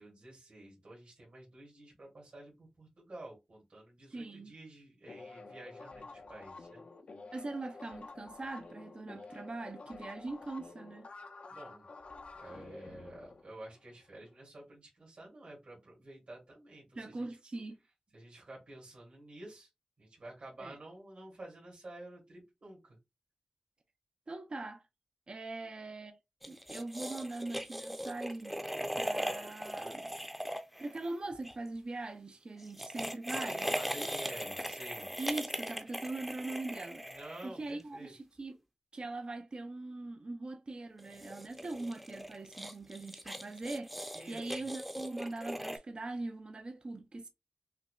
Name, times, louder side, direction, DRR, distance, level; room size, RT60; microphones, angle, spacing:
voice 1, 0.0-6.8 11.5-11.9 12.4-17.3 18.1-19.7 20.0-23.0 33.7-35.1 37.0-38.1 44.1-44.6, right 1 dB, 70° right, 1.9 m, -50 dB
voice 2, 4.1-4.5 7.3-11.1 17.0-17.8 20.6-20.8 24.3-24.8 25.3-26.2 26.5-28.6 29.0-30.1 30.8-34.1 35.2-37.2 37.4-38.6 38.9-43.9 44.3-47.3, right 2 dB, 50° right, 0.5 m, -41 dB
sound 1, 5.1-14.2, left 3 dB, 70° left, 0.6 m, -50 dB
sound 2, 26.4-31.5 32.6-37.8 41.0-45.8, equal, 5° right, 0.6 m, -39 dB
5.6 x 2.1 x 2.4 m
cardioid pair, 60°, 2 cm